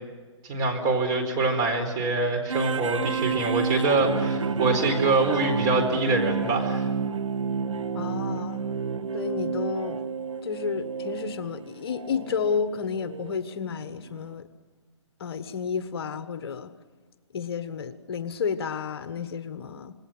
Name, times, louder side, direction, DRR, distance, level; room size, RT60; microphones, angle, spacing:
voice 1, 0.4-6.8, right 3 dB, 25° right, 4 dB, 4.3 m, -24 dB
sound 1, 2.5-13.4 14.0-14.1, right 6 dB, 85° right, 1.3 m, -30 dB
voice 2, 7.9-8.6 9.1-10.0 10.4-14.5 15.2-16.7 17.3-19.9, left 6 dB, 50° left, 11 dB, 1.3 m, -31 dB
27.0 x 21.0 x 7.8 m, 1.4 s
hypercardioid pair, 155°, 16 cm